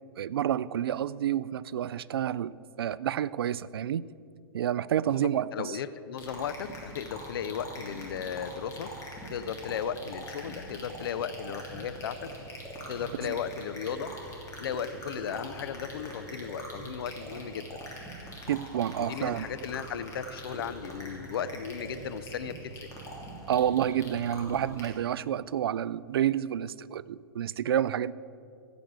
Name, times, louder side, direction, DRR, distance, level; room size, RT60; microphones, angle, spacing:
voice 1, 0.2-4.0 4.5-5.7 13.2-13.3 18.5-19.5 23.5-28.1, right 10 dB, 75° right, 19 dB, 0.4 m, -29 dB
voice 2, 5.5-8.9 9.3-12.2 12.9-14.1 14.6-17.7 19.1-22.6 22.8-22.9, left 8 dB, 70° left, 12 dB, 0.6 m, -35 dB
sound 1, 6.2-24.9, equal, 25° left, 3.0 m, -43 dB
15.5 x 5.2 x 8.1 m, 2.5 s
hypercardioid pair, 125°, 13 cm